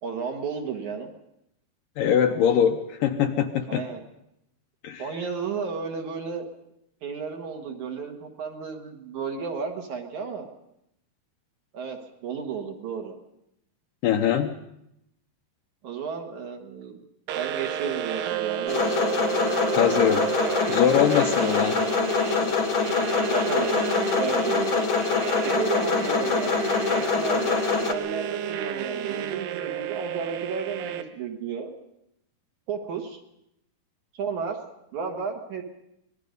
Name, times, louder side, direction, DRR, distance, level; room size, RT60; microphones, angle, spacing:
voice 1, 0.0-1.1 3.7-4.0 5.0-6.5 7.0-10.5 11.7-13.1 15.8-17.0 17.3-19.0 22.4-22.5 23.1-23.9 24.2-24.7 25.4-26.6 26.9-27.6 27.9-31.7 32.7-33.2 34.1-34.6 34.9-35.6, right 6 dB, 55° right, 2 dB, 2.6 m, -33 dB
voice 2, 2.0-3.8 4.8-5.1 14.0-14.5 19.8-20.2 20.7-21.9, left 9 dB, 75° left, 5 dB, 2.2 m, -22 dB
sound 1, 17.3-31.0, right 10 dB, 85° right, 3.1 m, -31 dB
sound 2, 18.7-27.9, left 5 dB, 45° left, 1.7 m, -25 dB
26.0 x 20.5 x 5.3 m, 0.81 s
omnidirectional pair, 4.6 m